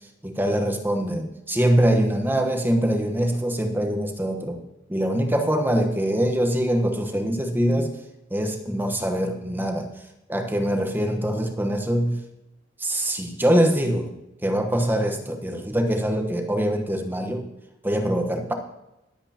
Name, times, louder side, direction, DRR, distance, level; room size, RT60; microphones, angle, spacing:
voice 1, 0.2-4.6 4.9-8.0 8.3-9.9 10.3-12.2 12.8-17.4 17.8-18.5, equal, 10° right, 3 dB, 1.1 m, -23 dB
22.0 x 8.1 x 2.9 m, 0.91 s
head